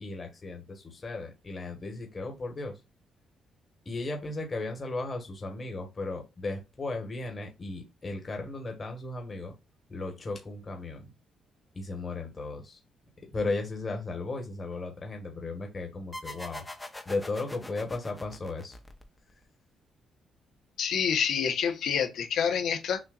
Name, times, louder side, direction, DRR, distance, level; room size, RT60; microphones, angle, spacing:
voice 1, 0.0-2.8 3.8-9.5 9.9-11.0 11.7-12.8 13.3-16.6 17.0-18.8, left 3 dB, 35° left, 1.5 m, -35 dB
sound 1, 16.1-19.4, left 1 dB, 10° left, 0.9 m, -43 dB
voice 2, 20.8-23.0, left 7 dB, 75° left, 1.1 m, -27 dB
6.3 x 2.8 x 2.4 m
cardioid pair, 90°, 0 cm